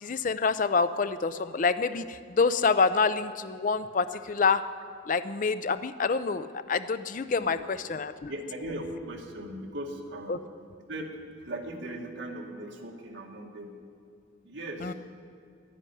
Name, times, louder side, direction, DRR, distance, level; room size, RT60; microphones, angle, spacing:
voice 1, 0.0-4.6 5.1-8.3 10.3-10.4 14.8-14.9, left 4 dB, 40° left, 12 dB, 0.4 m, -27 dB
voice 2, 7.3-7.7 8.3-10.4 10.9-13.8 14.4-14.9, right 1 dB, 65° right, 1 dB, 2.0 m, -39 dB
12.0 x 10.0 x 9.9 m, 2.1 s
head